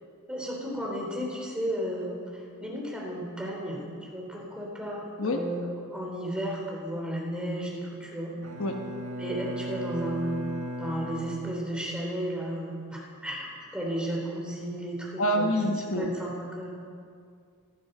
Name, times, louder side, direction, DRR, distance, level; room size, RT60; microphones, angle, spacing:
voice 1, 0.3-3.8 4.1-8.3 9.2-10.5 10.8-15.6 16.0-16.8, right 1 dB, 5° right, -3 dB, 3.5 m, -33 dB
Bowed string instrument, 8.4-12.0, equal, 80° right, 1.6 m, -37 dB
voice 2, 15.2-16.1, equal, 65° left, 3 dB, 1.2 m, -26 dB
15.0 x 13.0 x 6.7 m, 2.2 s
head